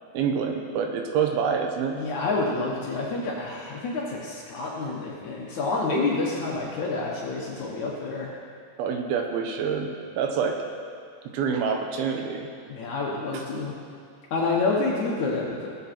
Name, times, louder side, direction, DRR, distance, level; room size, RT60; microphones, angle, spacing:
voice 1, 0.1-2.0 8.8-10.6 11.3-12.5, right 6 dB, 75° right, 4 dB, 2.6 m, -26 dB
voice 2, 1.9-8.3 12.7-13.8 14.3-15.7, left 3 dB, 65° left, -3 dB, 2.1 m, -28 dB
18.5 x 7.6 x 4.4 m, 2.3 s
omnidirectional pair, 4.6 m